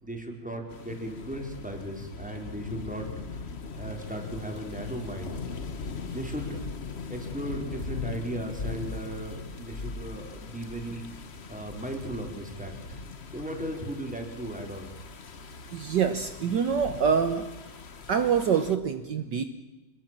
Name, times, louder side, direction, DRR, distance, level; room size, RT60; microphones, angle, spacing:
voice 1, 0.0-3.5 3.7-5.4 6.1-6.6 7.1-11.0 11.5-13.0 13.3-14.9, right 1 dB, 5° right, 3 dB, 4.4 m, -36 dB
sound 1, 0.7-18.8, left 4 dB, 35° left, 1.3 m, -40 dB
voice 2, 15.7-17.5 18.1-19.4, right 7 dB, 60° right, 9 dB, 1.7 m, -25 dB
26.0 x 22.0 x 7.6 m, 1.1 s
omnidirectional pair, 2.2 m